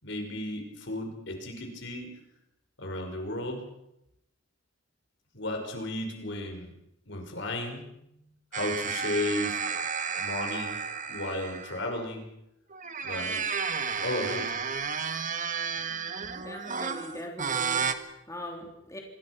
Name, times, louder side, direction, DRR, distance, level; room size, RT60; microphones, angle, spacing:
voice 1, 0.0-2.1 2.8-3.6 5.3-6.7 7.1-7.8 8.5-9.6 10.2-10.8 11.1-12.3 13.0-13.4 14.0-14.5, left 1 dB, 60° left, 4 dB, 6.0 m, -34 dB
sound 1, 8.5-12.1 12.7-17.9, right 6 dB, 40° right, 1.6 m, -32 dB
voice 2, 16.3-19.0, left 1 dB, 15° left, 1 dB, 3.4 m, -41 dB
26.5 x 22.0 x 6.2 m, 0.82 s
head